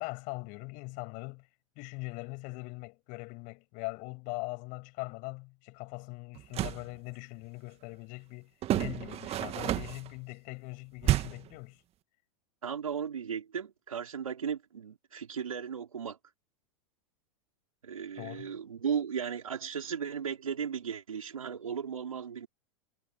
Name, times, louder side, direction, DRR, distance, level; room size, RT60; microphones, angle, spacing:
voice 1, 0.0-1.5 1.8-11.8 18.2-18.6, left 28 dB, 50° left, 6.5 m, -41 dB
sound 1, 6.4-6.9 8.6-10.1 11.0-11.5, right 13 dB, 35° right, 2.0 m, -30 dB
voice 2, 12.6-16.2 17.8-22.5, right 7 dB, 85° right, 4.5 m, -36 dB
hypercardioid pair, 100°, 17 cm